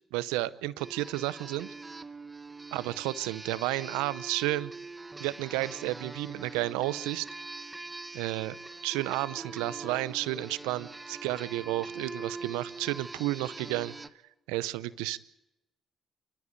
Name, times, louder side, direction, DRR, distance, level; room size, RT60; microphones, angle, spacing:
voice 1, 0.1-1.7 2.7-4.7 5.2-7.3 8.1-8.6 8.8-13.9 14.5-15.2, right 17 dB, 80° right, 18 dB, 0.7 m, -32 dB
sound 1, 0.8-14.1, right 3 dB, 25° right, 1.2 m, -43 dB
29.0 x 13.5 x 8.3 m, 0.94 s
hypercardioid pair, 45°, 0 cm